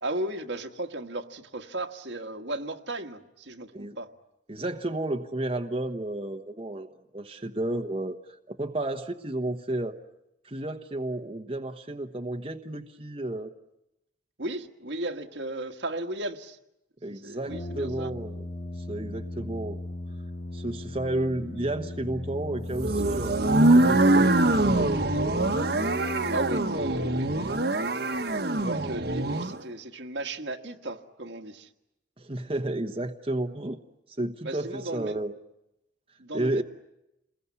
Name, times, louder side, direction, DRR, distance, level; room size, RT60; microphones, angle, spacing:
voice 1, 0.0-4.1 14.4-16.6 17.1-18.1 26.3-27.6 28.5-31.7 34.4-35.2 36.2-36.6, right 1 dB, 70° right, 5 dB, 1.6 m, -35 dB
voice 2, 4.5-8.2 8.5-10.0 10.4-13.5 17.0-18.4 18.9-19.8 20.5-23.4 23.7-25.4 32.2-33.8 34.2-35.3 36.3-36.6, right 1 dB, 30° right, 5 dB, 1.1 m, -32 dB
Brass instrument, 17.5-26.9, left 1 dB, 40° left, 2.1 m, -38 dB
sound 1, 22.7-29.6, right 2 dB, 55° right, 1.4 m, -23 dB
28.5 x 21.5 x 9.6 m, 0.90 s
head